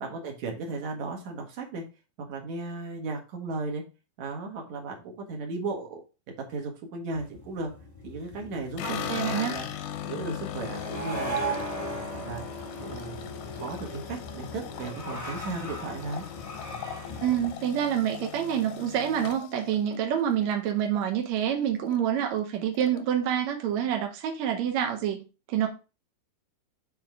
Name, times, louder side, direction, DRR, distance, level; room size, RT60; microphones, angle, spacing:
voice 1, 0.0-1.8 2.2-3.8 4.2-6.0 6.4-7.7 8.0-9.7 10.0-11.4 11.8-12.4 12.8-13.3 13.6-16.3, right 3 dB, 55° right, 2.5 m, -35 dB
sound 1, 7.1-17.5, right 1 dB, 15° left, 1.2 m, -38 dB
sound 2, 8.8-21.0 21.4-22.0 22.2-22.3 22.6-23.4, left 10 dB, 80° left, 1.9 m, -39 dB
voice 2, 8.8-9.5 17.2-25.2 25.5-25.7, right 9 dB, 75° right, 1.6 m, -27 dB
7.8 x 4.4 x 3.6 m
omnidirectional pair, 4.4 m